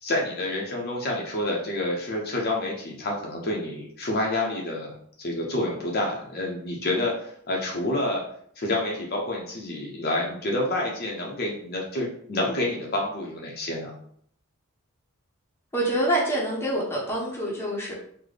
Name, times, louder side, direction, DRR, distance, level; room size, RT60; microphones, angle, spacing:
voice 1, 0.0-4.9 5.2-8.2 8.6-13.9, left 1 dB, 45° left, -2 dB, 0.6 m, -28 dB
voice 2, 15.7-17.9, right 1 dB, 10° left, -4 dB, 0.7 m, -26 dB
3.9 x 2.1 x 3.3 m, 0.63 s
head